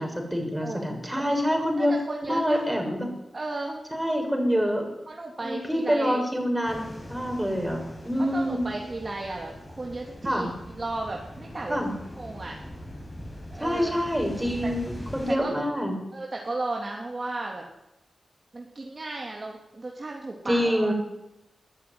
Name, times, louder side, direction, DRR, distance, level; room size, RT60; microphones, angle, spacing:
voice 1, 0.0-1.9 2.2-3.1 3.9-4.8 5.4-8.7 10.2-10.5 11.7-11.9 13.6-15.9 20.4-20.9, equal, 5° right, 2 dB, 6.3 m, -26 dB
voice 2, 0.6-1.2 1.8-2.6 3.3-3.8 5.1-6.2 8.2-11.8 12.2-12.6 13.5-14.0 14.6-14.7 15.4-15.5 16.1-17.6 18.5-20.9, right 2 dB, 30° right, 0 dB, 2.9 m, -34 dB
sound 1, 6.6-15.3, left 1 dB, 15° left, 7.1 m, -42 dB
21.5 x 14.0 x 9.7 m, 0.91 s
wide cardioid pair, 115°, 0 cm